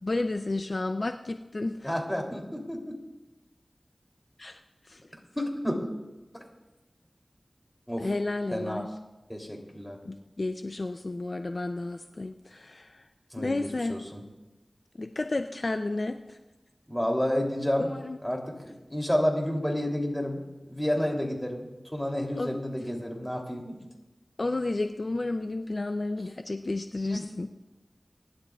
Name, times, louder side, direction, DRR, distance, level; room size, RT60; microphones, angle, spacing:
voice 1, 0.0-1.9 4.4-4.6 4.9-5.0 8.0-8.9 10.0-13.0 13.4-14.0 15.0-16.4 17.8-18.2 22.4-22.6 24.4-27.5, left 2 dB, 60° left, 7 dB, 0.5 m, -32 dB
voice 2, 1.8-3.0 5.4-5.8 6.3-6.4 7.9-8.1 8.5-8.8 9.3-10.0 13.3-13.5 13.9-14.2 16.9-17.9 18.2-18.6 18.9-20.4 20.7-21.6 21.9-23.8 27.1-27.2, equal, 10° left, 0 dB, 3.1 m, -30 dB
24.5 x 11.5 x 2.4 m, 1.1 s
wide cardioid pair, 40°, 0 cm